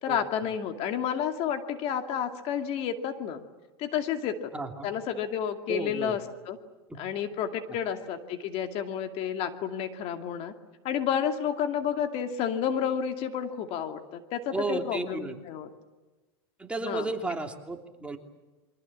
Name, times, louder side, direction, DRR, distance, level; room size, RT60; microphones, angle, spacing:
voice 1, 0.0-3.4 3.8-4.5 4.8-6.2 6.5-6.6 7.0-10.5 10.8-15.7 16.8-17.1, left 8 dB, 50° left, 6 dB, 2.4 m, -30 dB
voice 2, 4.5-4.9 5.7-6.2 14.5-15.4 16.6-18.2, right 3 dB, 10° right, 3 dB, 3.0 m, -33 dB
28.5 x 24.5 x 7.5 m, 1.2 s
hypercardioid pair, 115°, 14 cm